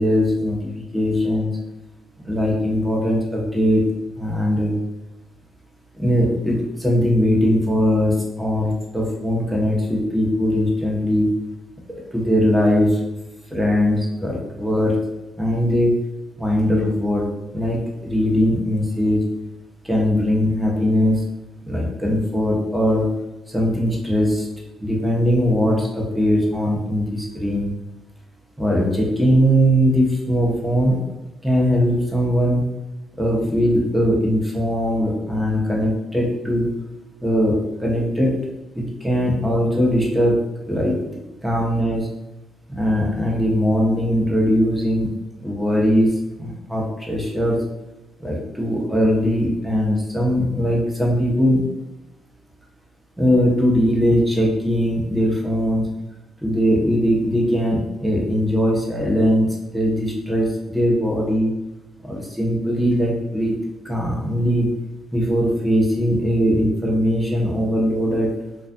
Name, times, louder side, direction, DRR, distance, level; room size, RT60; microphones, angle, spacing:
voice 1, 0.0-1.5 2.2-3.9 4.2-4.8 5.9-11.3 11.9-13.0 13.5-15.0 15.4-16.0 16.4-17.3 17.5-19.2 19.8-21.2 21.6-23.1 23.5-24.5 24.8-27.7 28.6-31.0 31.4-32.7 33.2-36.8 37.2-38.5 38.7-40.4 40.7-41.0 41.4-42.1 42.7-45.1 45.4-47.6 48.2-51.7 53.2-55.9 56.4-61.5 62.0-63.6 63.8-64.7 65.1-68.4, equal, 5° right, -2 dB, 0.8 m, -20 dB
2.5 x 2.3 x 2.5 m, 0.97 s
supercardioid pair, 60°, 0 cm